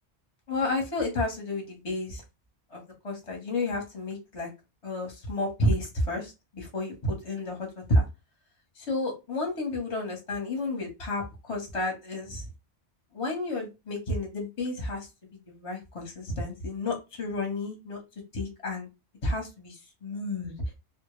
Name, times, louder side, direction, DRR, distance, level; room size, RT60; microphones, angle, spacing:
voice 1, 0.5-2.2 2.7-4.5 4.8-8.0 8.8-12.5 13.1-15.1 15.5-18.0 18.3-18.9 19.2-20.5, left 2 dB, 35° left, 1 dB, 0.8 m, -31 dB
2.1 x 2.0 x 3.0 m, 0.25 s
omnidirectional pair, 1.1 m